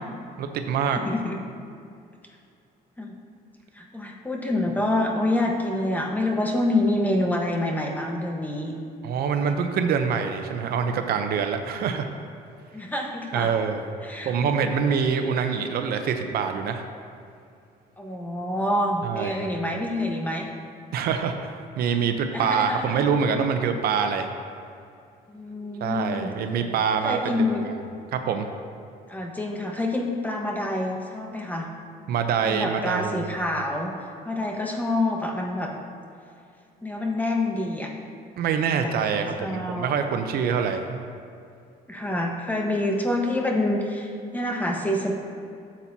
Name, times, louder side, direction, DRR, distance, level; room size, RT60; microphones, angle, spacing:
voice 1, 0.4-1.0 9.0-12.1 13.3-13.9 14.2-16.8 19.0-19.3 20.9-24.3 25.8-27.7 28.1-28.5 32.1-33.3 38.4-41.0, right 6 dB, 65° right, 6 dB, 0.7 m, -25 dB
voice 2, 0.9-1.4 3.0-3.1 3.7-8.7 12.7-13.5 14.0-14.3 18.0-20.5 22.3-23.0 25.3-26.3 27.0-27.7 29.1-31.7 32.4-33.9 34.2-35.7 36.8-37.9 38.7-39.9 41.9-45.1, left 1 dB, 10° left, 0 dB, 1.2 m, -27 dB
12.5 x 7.3 x 2.8 m, 2.5 s
cardioid pair, 110°, 17 cm